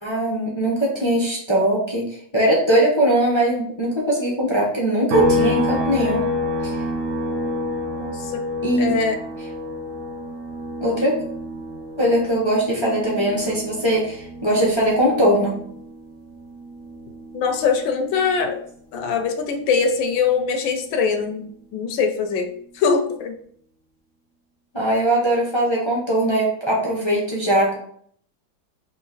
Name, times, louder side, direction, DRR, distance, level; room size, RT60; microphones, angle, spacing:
voice 1, 0.0-2.0 2.3-6.2 6.6-6.8 8.6-9.0 10.8-11.2 12.0-15.6 24.7-27.8, right 1 dB, 40° left, -5 dB, 0.4 m, -20 dB
sound 1, 5.1-18.6 19.0-21.2, left 1 dB, 70° right, 0.7 m, -29 dB
voice 2, 8.0-8.4 8.8-9.2 17.3-18.6 18.9-22.5 22.7-23.4, left 5 dB, 75° left, 5 dB, 1.3 m, -22 dB
3.9 x 3.1 x 4.0 m, 0.62 s
omnidirectional pair, 2.2 m